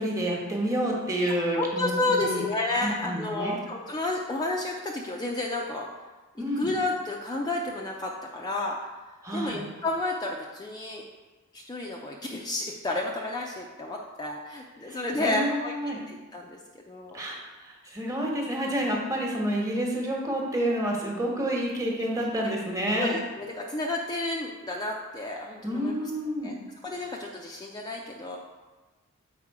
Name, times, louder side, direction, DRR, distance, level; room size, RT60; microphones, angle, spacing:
voice 1, 0.0-2.4 2.8-3.5 6.4-6.7 9.2-9.7 14.9-16.0 17.1-23.2 25.6-26.5 26.9-27.0, equal, 15° right, -1 dB, 1.3 m, -29 dB
voice 2, 1.3-5.9 6.6-8.8 9.3-11.0 11.5-15.7 16.1-17.2 21.0-21.1 22.9-25.9 26.4-26.5 26.8-28.4, left 2 dB, 20° left, -1 dB, 0.5 m, -31 dB
7.2 x 4.8 x 4.8 m, 1.2 s
head